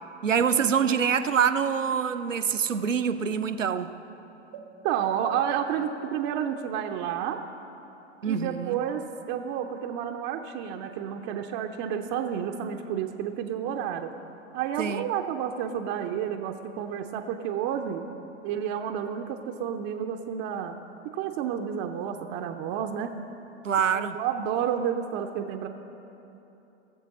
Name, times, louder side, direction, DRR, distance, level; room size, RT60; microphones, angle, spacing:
voice 1, 0.2-3.9 8.2-8.8 14.8-15.0 23.6-24.2, right 7 dB, 90° right, 11 dB, 0.6 m, -25 dB
voice 2, 4.8-7.4 8.3-14.1 14.5-18.1 18.4-20.8 21.1-23.1 23.9-25.7, right 9 dB, 30° right, 4 dB, 0.5 m, -30 dB
17.5 x 7.4 x 4.0 m, 3.0 s
figure-of-eight pair, 95°, 37 cm